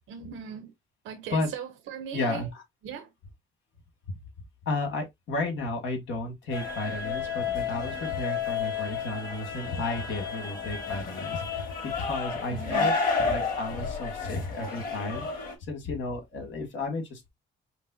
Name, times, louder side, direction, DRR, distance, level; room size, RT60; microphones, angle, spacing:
voice 1, 0.1-0.7 1.0-2.5 2.8-3.1 12.5-12.9, right 7 dB, 90° right, 0.8 m, -38 dB
voice 2, 2.1-2.6 4.1-4.2 4.7-12.9 13.2-17.3, left 2 dB, 75° left, 2.0 m, -33 dB
sound 1, 6.5-15.5, left 5 dB, 45° left, 2.9 m, -31 dB
5.4 x 2.2 x 4.0 m
cardioid pair, 90°, 20 cm